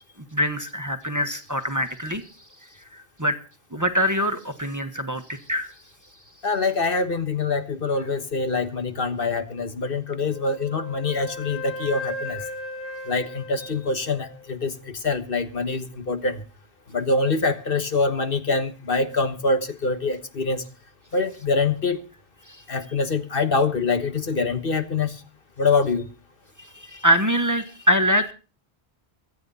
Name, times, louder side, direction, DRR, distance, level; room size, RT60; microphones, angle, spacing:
voice 1, 0.3-2.2 2.9-3.4 3.7-5.7 22.5-22.6 26.6-28.3, equal, 20° right, 6 dB, 1.4 m, -24 dB
voice 2, 6.4-12.5 13.1-16.4 16.9-20.6 21.1-22.0 22.7-25.2 25.6-26.1, left 3 dB, 60° left, 9 dB, 1.6 m, -25 dB
Wind instrument woodwind instrument, 10.3-14.5, left 2 dB, 10° left, 2.5 m, -36 dB
24.0 x 9.6 x 4.1 m, 0.36 s
omnidirectional pair, 1.0 m